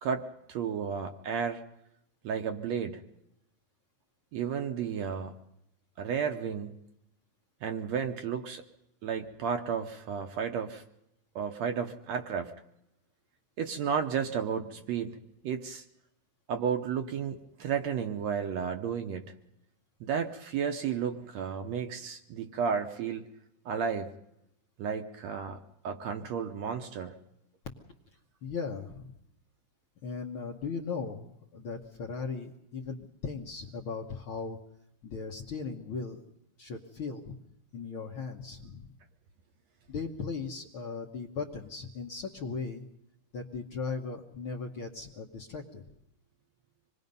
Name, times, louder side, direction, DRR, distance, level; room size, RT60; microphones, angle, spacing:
voice 1, 0.0-1.6 2.2-3.0 4.3-5.3 6.0-6.8 7.6-8.6 9.0-10.8 11.4-12.5 13.6-15.2 15.4-15.8 16.5-19.3 20.0-23.2 23.7-24.1 24.8-25.6 25.8-27.2, right 7 dB, 70° right, 5 dB, 1.8 m, -32 dB
voice 2, 28.4-29.2 30.0-34.6 35.0-36.2 36.6-37.4 37.7-38.9 39.9-42.9 43.3-45.8, left 5 dB, 55° left, 1 dB, 1.5 m, -38 dB
26.0 x 20.5 x 5.4 m, 0.82 s
omnidirectional pair, 3.7 m